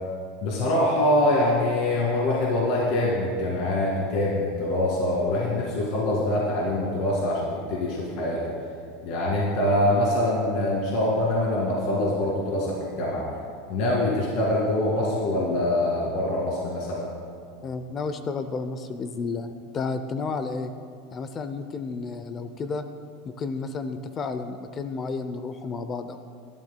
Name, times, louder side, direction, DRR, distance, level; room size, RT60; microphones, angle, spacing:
voice 1, 0.4-8.6 9.0-13.3 13.7-17.1, left 1 dB, 55° left, -4 dB, 2.2 m, -24 dB
voice 2, 17.6-20.7 21.1-22.8 23.3-26.2, left 4 dB, 25° left, 9 dB, 0.5 m, -32 dB
21.5 x 12.0 x 2.2 m, 2.2 s
supercardioid pair, 145°, 0 cm